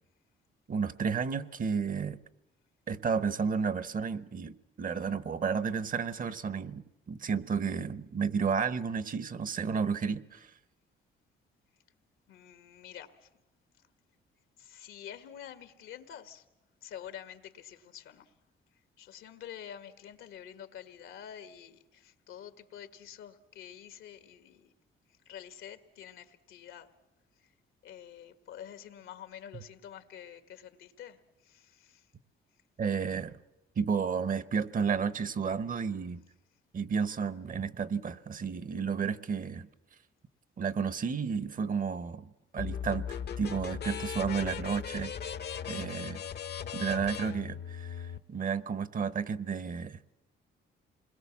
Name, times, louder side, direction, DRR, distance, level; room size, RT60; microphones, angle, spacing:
voice 1, 0.7-2.2 2.9-10.5 32.8-33.3 33.8-36.2 36.7-39.7 40.6-43.0 43.4-45.1 45.7-46.2 46.7-50.1, right 6 dB, 45° right, 1.0 m, -32 dB
voice 2, 12.3-13.3 14.6-16.5 16.8-18.3 19.0-24.7 25.1-26.9 27.4-27.5 27.8-32.1, left 9 dB, 85° left, 1.7 m, -48 dB
sound 1, 42.6-48.2, left 8 dB, 55° left, 0.9 m, -38 dB
28.0 x 21.5 x 7.3 m
cardioid pair, 90°, 20 cm